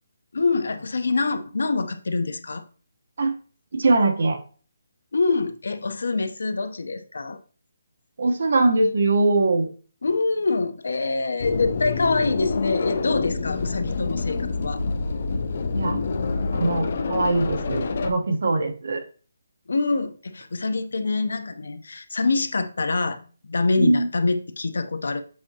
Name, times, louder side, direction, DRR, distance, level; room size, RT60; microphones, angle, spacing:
voice 1, 0.3-2.6 5.1-7.4 10.0-14.8 19.7-23.2 23.5-25.2, left 3 dB, 75° left, 0.7 m, -25 dB
voice 2, 3.7-4.4 8.2-9.7 15.7-16.0 16.5-19.0 23.8-24.1, right 2 dB, 50° right, 1.0 m, -21 dB
sound 1, 11.4-18.1, left 4 dB, 40° left, 0.5 m, -27 dB
7.6 x 4.8 x 2.8 m
hypercardioid pair, 175°, 0 cm